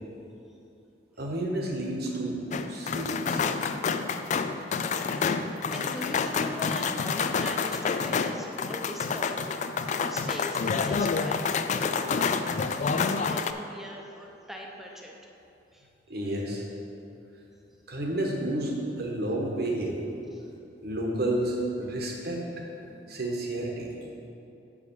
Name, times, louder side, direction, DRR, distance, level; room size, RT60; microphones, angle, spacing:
voice 1, 1.2-3.5 16.1-16.6 17.9-20.1 20.8-23.9, right 1 dB, 60° right, 0 dB, 1.2 m, -31 dB
sound 1, 2.5-13.5, left 5 dB, 40° left, 0.3 m, -28 dB
voice 2, 5.7-12.4 12.7-15.2 15.7-15.8, equal, ahead, 0 dB, 0.8 m, -41 dB
6.7 x 4.9 x 6.7 m, 2.8 s
head